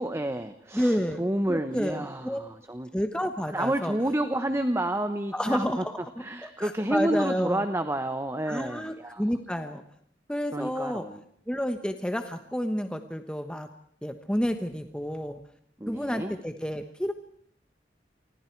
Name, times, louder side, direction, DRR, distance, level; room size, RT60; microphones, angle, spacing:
voice 1, 0.0-2.9 3.5-5.8 6.2-9.2 10.5-11.2 15.8-16.3, right 1 dB, 15° right, 9 dB, 1.1 m, -30 dB
voice 2, 0.7-1.2 1.5-2.4 2.9-3.9 5.3-6.0 6.4-7.7 8.5-9.8 10.3-11.1 11.5-13.7 14.0-15.4 15.9-17.1, equal, 5° left, 7 dB, 1.2 m, -30 dB
29.5 x 25.0 x 4.7 m, 0.64 s
head